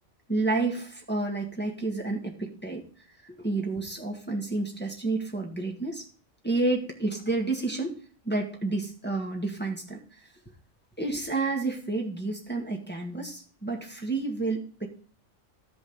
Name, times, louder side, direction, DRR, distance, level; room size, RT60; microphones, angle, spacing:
voice 1, 0.3-2.8 3.2-6.1 6.4-8.0 8.2-10.0 11.0-14.9, right 3 dB, 10° left, -1 dB, 1.8 m, -30 dB
13.5 x 5.3 x 5.1 m, 0.42 s
omnidirectional pair, 1.3 m